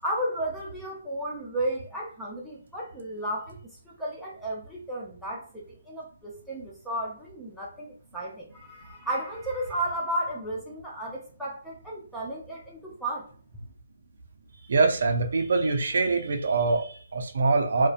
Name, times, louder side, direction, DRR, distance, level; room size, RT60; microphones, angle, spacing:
voice 1, 0.0-3.6 3.8-13.3, right 1 dB, ahead, -6 dB, 0.5 m, -33 dB
voice 2, 14.7-17.9, right 3 dB, 65° right, 4 dB, 0.5 m, -24 dB
2.6 x 2.1 x 2.3 m, 0.43 s
hypercardioid pair, 155°, 0 cm